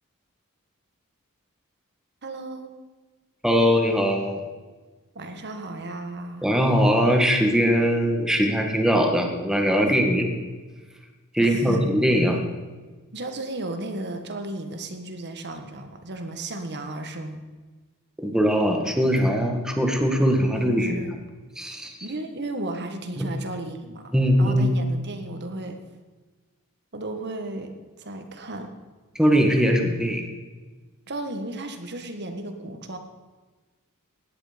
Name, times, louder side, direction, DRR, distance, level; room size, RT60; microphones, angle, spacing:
voice 1, 2.2-2.7 5.1-6.5 11.4-11.9 13.1-17.4 20.6-21.1 22.0-24.0 24.4-25.8 26.9-28.7 31.1-33.0, right 2 dB, 50° right, 6 dB, 1.6 m, -34 dB
voice 2, 3.4-4.4 6.4-10.3 11.3-12.4 18.2-21.0 21.5-21.9 23.2-23.3 24.1-24.8 29.1-30.2, equal, 5° right, 2 dB, 1.7 m, -21 dB
17.5 x 10.5 x 5.2 m, 1.3 s
head